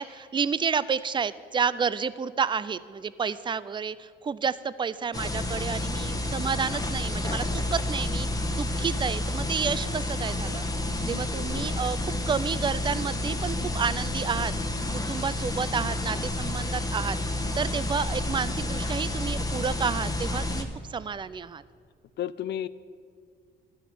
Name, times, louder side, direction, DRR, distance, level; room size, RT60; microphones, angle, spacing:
voice 1, 0.0-10.6 11.1-14.5 14.9-21.6, right 6 dB, 25° right, 17 dB, 0.4 m, -30 dB
sound 1, 5.1-20.6, left 1 dB, 20° left, 1.1 m, -30 dB
voice 2, 11.1-11.7 22.2-22.7, left 11 dB, 60° left, 17 dB, 0.4 m, -34 dB
12.0 x 6.2 x 9.4 m, 2.1 s
cardioid pair, 90°, 20 cm